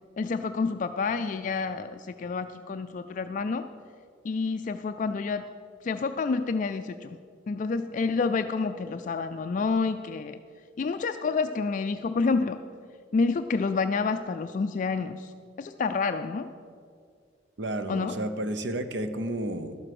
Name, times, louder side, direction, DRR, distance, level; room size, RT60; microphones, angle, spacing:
voice 1, 0.2-3.7 4.2-5.5 5.8-7.2 7.5-10.4 10.8-12.6 13.1-15.3 15.6-16.5 17.9-18.2, left 4 dB, 45° left, 9 dB, 0.3 m, -28 dB
voice 2, 17.6-19.8, right 1 dB, 65° right, 9 dB, 0.8 m, -31 dB
12.0 x 7.8 x 6.0 m, 2.2 s
head